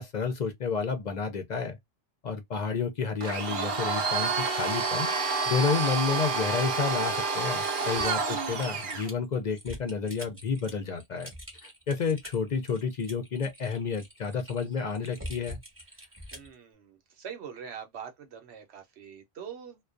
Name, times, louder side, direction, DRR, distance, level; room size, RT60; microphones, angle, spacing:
voice 1, 0.0-1.8 2.2-11.3 11.6-15.6, left 5 dB, 55° left, 0.6 m, -30 dB
Domestic sounds home sounds, 3.2-9.1, right 4 dB, 60° right, 0.7 m, -29 dB
Typing, 7.6-16.5, equal, 15° right, 0.9 m, -45 dB
voice 2, 16.0-19.8, right 7 dB, 85° right, 1.0 m, -44 dB
2.3 x 2.2 x 2.4 m
omnidirectional pair, 1.1 m